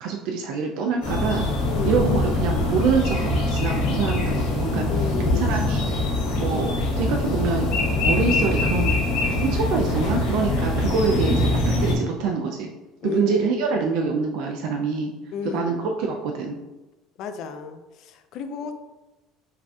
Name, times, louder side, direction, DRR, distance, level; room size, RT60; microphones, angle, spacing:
voice 1, 0.0-1.5 1.9-7.7 8.1-9.0 9.4-11.5 11.8-12.7 13.0-15.1 15.4-16.6, right 5 dB, 75° right, 2 dB, 0.4 m, -25 dB
sound 1, 1.0-11.9, left 2 dB, 90° left, 1.5 m, -23 dB
voice 2, 1.7-2.1 4.9-5.6 13.0-13.5 15.3-15.7 17.2-18.7, left 6 dB, 60° left, 8 dB, 0.4 m, -32 dB
5.4 x 2.5 x 2.4 m, 1.1 s
supercardioid pair, 115°, 0 cm